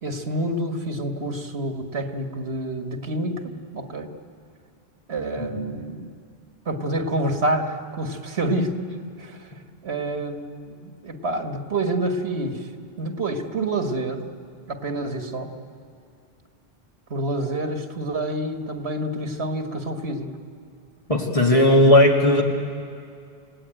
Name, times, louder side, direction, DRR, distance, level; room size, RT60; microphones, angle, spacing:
voice 1, 0.0-4.1 5.1-6.1 6.7-9.5 9.8-12.7 13.0-14.3 14.7-15.5 17.1-20.4, right 1 dB, 85° right, 5 dB, 1.9 m, -28 dB
voice 2, 21.1-22.4, left 1 dB, 35° left, 0 dB, 2.1 m, -16 dB
29.0 x 17.5 x 9.1 m, 2.4 s
omnidirectional pair, 1.1 m